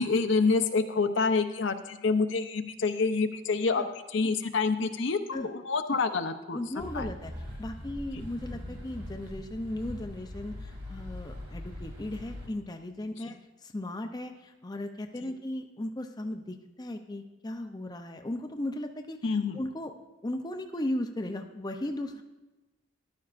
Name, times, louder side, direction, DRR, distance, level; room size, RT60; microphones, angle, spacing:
voice 1, 0.0-6.6 6.9-7.1 19.2-19.6, left 4 dB, 65° left, 8 dB, 0.6 m, -27 dB
voice 2, 6.5-7.3 7.6-19.9 20.2-22.2, left 1 dB, 20° left, 5 dB, 0.5 m, -36 dB
sound 1, 6.8-12.5, left 1 dB, 60° right, 2.6 m, -41 dB
14.0 x 11.5 x 2.5 m, 1.1 s
head